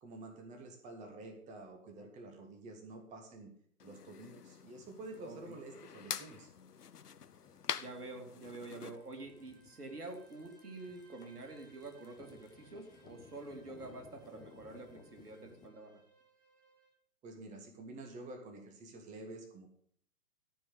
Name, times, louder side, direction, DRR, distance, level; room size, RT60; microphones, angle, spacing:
voice 1, 0.0-3.5 3.8-6.5 17.2-19.7, right 2 dB, 15° right, 4 dB, 1.4 m, -49 dB
sound 1, 3.8-9.0, left 7 dB, 85° left, 0.7 m, -45 dB
sound 2, 4.8-15.7, left 6 dB, 10° left, 0.8 m, -61 dB
voice 2, 5.2-5.5 7.7-16.0, right 2 dB, 80° right, 4 dB, 2.7 m, -47 dB
Bowed string instrument, 8.7-17.0, right 5 dB, 60° right, 3.4 m, -67 dB
14.0 x 4.7 x 7.9 m, 0.64 s
figure-of-eight pair, 120°, 46 cm